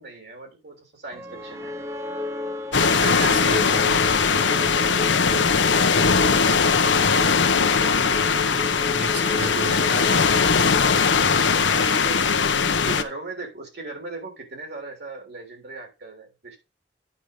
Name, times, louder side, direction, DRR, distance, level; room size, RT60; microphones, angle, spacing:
voice 1, 0.0-1.7 4.2-5.3 11.7-16.6, right 3 dB, 65° right, 3.3 m, -39 dB
sound 1, 1.1-11.3, left 2 dB, 15° right, 0.8 m, -34 dB
sound 2, 2.7-13.0, left 5 dB, 80° left, 1.0 m, -20 dB
voice 2, 2.7-4.1 7.8-10.3, right 1 dB, 80° right, 4.8 m, -34 dB
9.2 x 5.0 x 5.2 m
head